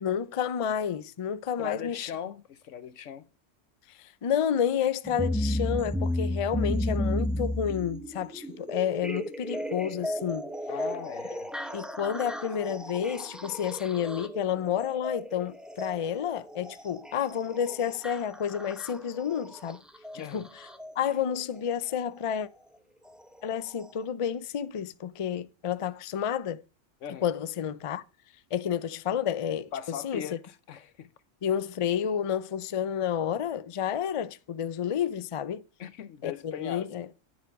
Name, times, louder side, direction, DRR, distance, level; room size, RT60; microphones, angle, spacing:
voice 1, 0.0-2.1 3.9-10.5 11.7-19.8 20.3-20.5 21.0-22.5 23.4-26.6 27.2-28.0 28.5-30.2 31.4-35.6 36.2-37.1, left 8 dB, 45° left, 0.4 m, -30 dB
voice 2, 1.6-3.3 10.7-11.5 20.1-20.5 27.0-27.3 29.7-31.1 35.8-36.9, left 9 dB, 90° left, 1.2 m, -39 dB
sound 1, 5.0-21.0 22.2-22.3 23.1-23.2 23.8-23.9, left 1 dB, ahead, 0.8 m, -34 dB
9.3 x 7.6 x 4.7 m
omnidirectional pair, 1.2 m